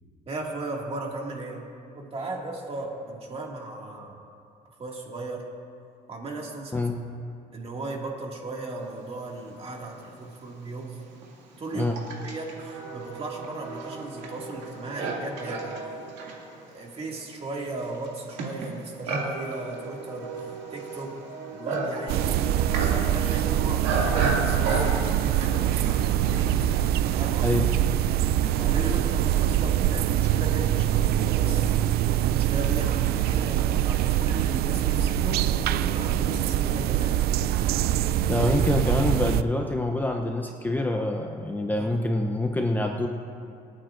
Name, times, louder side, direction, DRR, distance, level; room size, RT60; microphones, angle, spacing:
voice 1, 0.3-1.7 1.9-4.2 4.8-5.5 6.1-6.8 7.5-11.1 11.6-11.9 12.2-15.8 16.7-21.2 21.5-24.9 25.4-26.5 27.1-27.5 28.5-31.8 32.2-37.2 41.8-42.1, right 2 dB, 35° right, -1 dB, 2.1 m, -36 dB
Livestock farm animals working animals, 10.0-10.1 10.8-26.7, right 3 dB, 90° right, 2.3 m, -33 dB
sound 1, 22.1-39.4, right 11 dB, 70° right, 0.4 m, -24 dB
voice 2, 38.3-43.1, left 2 dB, 10° left, 3 dB, 0.7 m, -26 dB
26.5 x 8.9 x 2.6 m, 2.6 s
cardioid pair, 110°, 17 cm